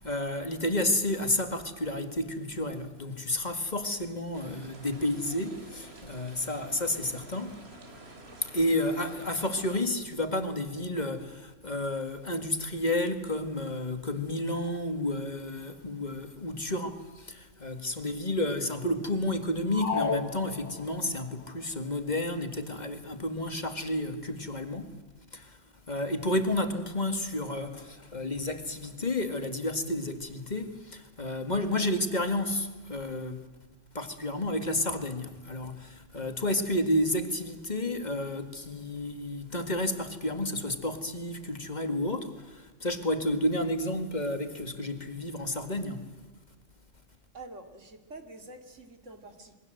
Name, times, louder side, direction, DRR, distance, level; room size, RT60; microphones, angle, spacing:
voice 1, 0.0-7.6 8.4-24.9 25.3-25.6 25.9-33.4 33.9-46.1, left 1 dB, 35° left, 2.1 m, -31 dB
sound 1, 4.3-9.8, right 2 dB, 55° right, 3.2 m, -50 dB
sound 2, 19.7-21.2, left 5 dB, 85° left, 2.2 m, -32 dB
voice 2, 47.3-49.6, right 2 dB, 80° right, 3.0 m, -47 dB
27.5 x 22.5 x 7.9 m
omnidirectional pair, 1.3 m